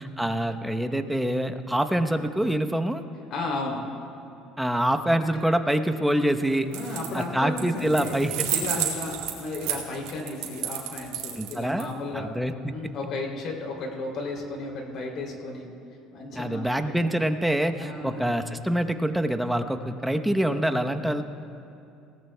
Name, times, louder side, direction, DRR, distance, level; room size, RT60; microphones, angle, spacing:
voice 1, 0.0-3.0 4.6-6.7 7.1-8.5 11.4-11.9 12.1-12.7 16.4-21.2, right 1 dB, 5° right, 7 dB, 0.9 m, -25 dB
voice 2, 3.3-3.8 6.7-8.2 8.5-12.3 12.7-15.7 16.1-17.0 17.8-18.3, left 2 dB, 60° left, 0 dB, 2.9 m, -34 dB
sound 1, 6.7-7.2 7.6-11.8, right 10 dB, 80° right, 2.1 m, -31 dB
19.5 x 17.5 x 2.2 m, 2.7 s
supercardioid pair, 85°, 0 cm